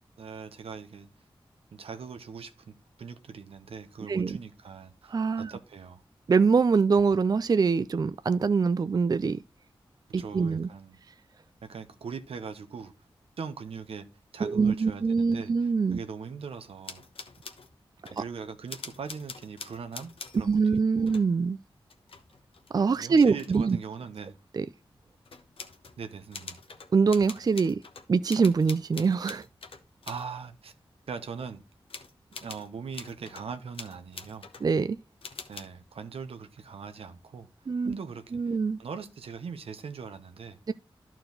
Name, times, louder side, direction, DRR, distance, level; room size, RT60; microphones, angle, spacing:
voice 1, 0.2-1.1 1.7-6.0 10.2-11.0 11.7-12.9 13.4-14.1 14.3-17.0 18.1-20.1 20.4-20.6 21.0-21.1 23.0-24.4 26.0-26.6 30.1-30.7 31.1-31.6 32.4-34.5 35.5-37.5 37.8-40.6, right 6 dB, 90° right, 0.9 m, -41 dB
voice 2, 5.1-5.5 6.3-9.4 10.1-10.7 14.4-16.0 18.2-18.3 20.5-21.6 22.7-23.8 24.5-24.7 26.9-27.8 28.1-29.5 34.6-35.0 37.7-37.9 38.3-38.8 40.7-40.8, right 5 dB, 45° right, 0.3 m, -24 dB
sound 1, 16.8-17.7 18.0-18.3 18.7-20.7 21.1-21.3 21.9-23.7 25.2-26.0 26.3-30.2 31.9-33.5 33.7-34.7 35.2-35.7, left 4 dB, 75° left, 1.0 m, -45 dB
11.5 x 4.5 x 3.9 m
cardioid pair, 50°, 10 cm